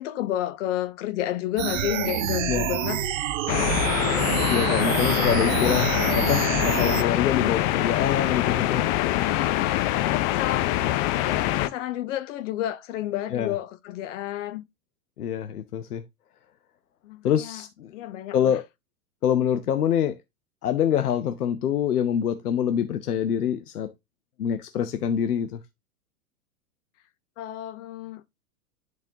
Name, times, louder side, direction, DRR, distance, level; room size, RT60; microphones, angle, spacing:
voice 1, 0.0-3.1 9.2-14.6 17.0-17.6 17.9-18.6 21.0-21.1 27.4-28.3, left 13 dB, 55° left, 0.9 m, -31 dB
sound 1, 1.6-7.0, right 11 dB, 60° right, 0.8 m, -27 dB
sound 2, 3.5-11.7, left 15 dB, 35° left, 0.5 m, -24 dB
voice 2, 4.5-9.1 13.3-13.5 15.2-16.0 17.2-17.9 18.3-18.6 19.2-20.1 20.6-23.9 24.4-25.6, left 9 dB, 85° left, 0.8 m, -25 dB
10.5 x 4.2 x 2.8 m
hypercardioid pair, 105°, 45 cm